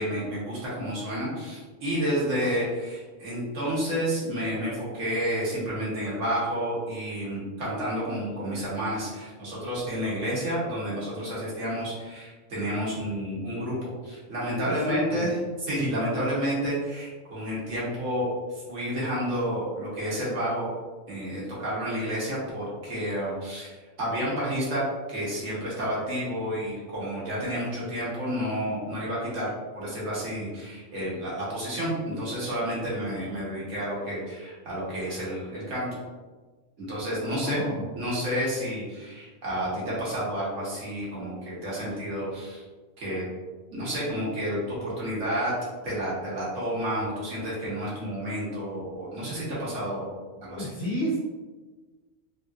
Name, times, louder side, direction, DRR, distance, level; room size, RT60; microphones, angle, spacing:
voice 1, 0.0-15.4 15.7-18.3 18.5-20.7 21.1-35.9 36.8-37.6 37.9-42.6 43.0-43.3 43.7-45.5 45.8-50.1 50.4-50.7, equal, 90° right, -7 dB, 1.5 m, -30 dB
voice 2, 14.6-15.3 37.2-37.9 50.5-51.2, right 1 dB, 75° left, -6 dB, 1.0 m, -31 dB
3.5 x 2.7 x 2.4 m, 1.3 s
omnidirectional pair, 1.3 m